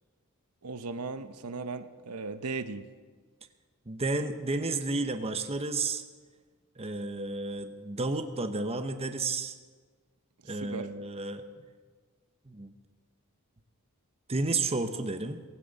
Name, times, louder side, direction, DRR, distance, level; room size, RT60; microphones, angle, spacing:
voice 1, 0.6-2.8 10.5-10.9, right 4 dB, 90° right, 10 dB, 0.8 m, -37 dB
voice 2, 3.9-6.0 6.8-9.5 10.4-11.4 12.5-12.7 14.3-15.4, right 3 dB, 30° right, 7 dB, 0.9 m, -32 dB
19.0 x 16.5 x 4.1 m, 1.5 s
head